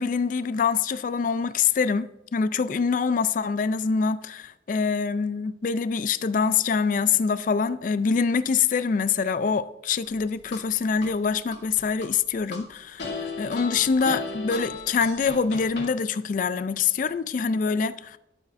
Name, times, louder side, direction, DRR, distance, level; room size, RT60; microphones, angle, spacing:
voice 1, 0.0-18.2, left 5 dB, 45° left, 0.3 m, -25 dB
sound 1, 10.1-11.1 11.5-12.6 13.0-15.9, left 3 dB, 80° left, 2.1 m, -35 dB
11.5 x 8.0 x 2.5 m
head